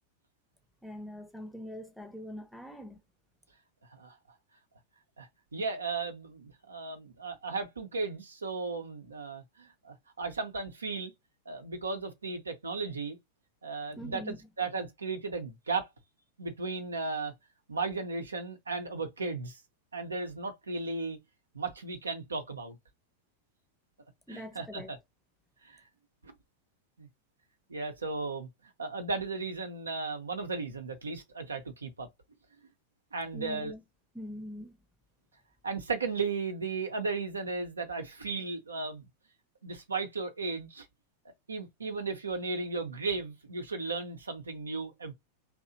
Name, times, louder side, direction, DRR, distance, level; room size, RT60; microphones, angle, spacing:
voice 1, 0.8-3.0 14.0-14.4 24.3-24.9 33.3-33.8 34.1-34.8, equal, 5° left, 0.6 m, -43 dB
voice 2, 5.2-11.1 11.5-13.2 13.6-15.9 16.4-17.3 17.7-19.6 19.9-21.2 21.5-22.8 24.3-25.0 25.6-25.8 26.2-26.3 27.0-27.1 27.7-28.5 28.8-32.1 33.1-33.7 35.6-39.1 39.6-40.9 41.5-45.1, right 4 dB, 75° right, 0.6 m, -35 dB
2.7 x 2.0 x 2.6 m
figure-of-eight pair, 90°, 0 cm